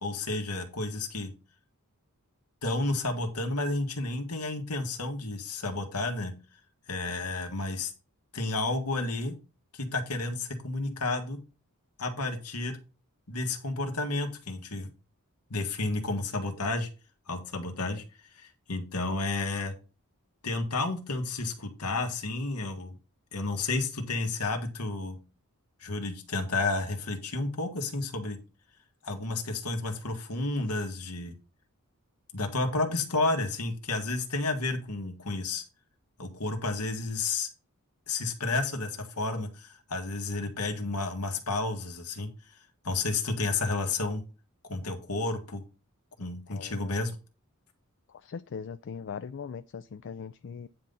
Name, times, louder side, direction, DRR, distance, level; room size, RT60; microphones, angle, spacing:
voice 1, 0.0-1.3 2.6-6.3 6.9-7.9 8.3-9.4 9.7-11.4 12.0-12.8 13.3-14.9 15.5-16.9 17.3-18.0 18.3-19.7 20.4-22.9 23.3-25.2 25.8-28.4 29.0-31.3 32.3-35.6 36.2-37.5 38.1-42.3 42.8-44.2 44.6-45.6 46.2-47.2, left 3 dB, 90° left, 1.8 m, -31 dB
voice 2, 46.5-46.9 48.1-50.7, left 6 dB, 55° left, 0.4 m, -40 dB
9.6 x 3.9 x 5.6 m
head